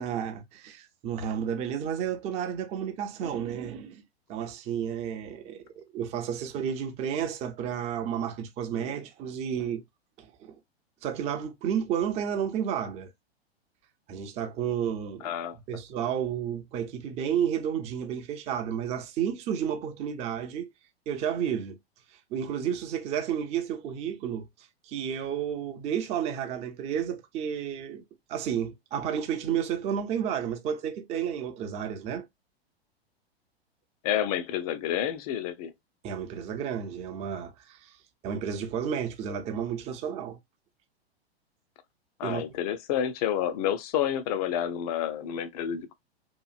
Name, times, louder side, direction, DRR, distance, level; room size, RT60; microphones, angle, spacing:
voice 1, 0.0-4.0 4.3-9.8 10.2-10.6 11.0-13.1 14.1-15.3 15.7-20.7 21.1-21.8 22.3-24.5 24.8-28.0 28.3-32.3 36.0-37.9 38.2-40.4 42.2-42.4, right 8 dB, 20° right, 0.4 m, -31 dB
voice 2, 15.2-15.6 34.0-35.7 42.2-45.9, left 10 dB, 40° left, 0.4 m, -29 dB
2.9 x 2.4 x 2.4 m
figure-of-eight pair, 105°, 32 cm